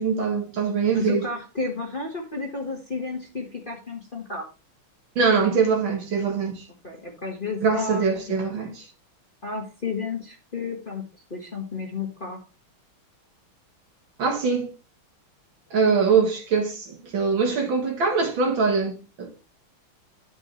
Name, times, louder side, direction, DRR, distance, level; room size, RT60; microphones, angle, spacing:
voice 1, 0.0-1.2 5.2-6.6 7.6-8.9 14.2-14.7 15.7-19.3, right 5 dB, 65° right, 2.4 m, -23 dB
voice 2, 0.9-4.5 6.8-8.5 9.4-11.0 11.3-12.4, left 4 dB, 25° left, 1.5 m, -32 dB
11.0 x 6.3 x 3.2 m
omnidirectional pair, 2.4 m